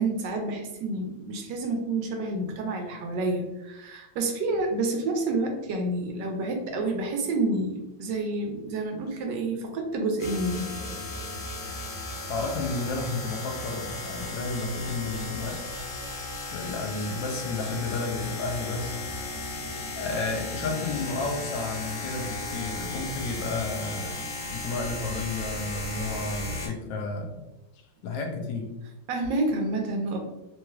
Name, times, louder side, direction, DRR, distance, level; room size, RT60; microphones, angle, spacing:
voice 1, 0.0-10.7 29.1-30.2, right 2 dB, 75° right, 3 dB, 1.1 m, -29 dB
sound 1, 10.2-26.7, left 2 dB, 60° left, 0.8 m, -35 dB
voice 2, 12.3-15.6 16.5-19.0 20.0-27.5 28.0-28.8, left 3 dB, 85° left, 3 dB, 1.3 m, -32 dB
3.2 x 3.1 x 2.2 m, 0.99 s
omnidirectional pair, 2.0 m